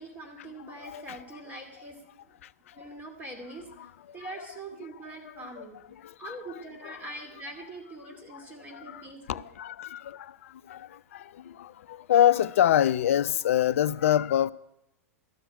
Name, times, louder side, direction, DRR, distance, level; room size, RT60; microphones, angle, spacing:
voice 1, 0.0-2.0 2.3-2.4 2.7-5.8 6.2-9.4, right 2 dB, 20° right, 2.5 m, -43 dB
voice 2, 0.6-1.2 2.4-2.9 4.1-4.5 5.4-5.6 6.0-6.3 6.8-7.0 8.3-8.4 8.7-14.5, left 11 dB, 60° left, 0.5 m, -27 dB
13.0 x 6.2 x 9.2 m
figure-of-eight pair, 100°, 8 cm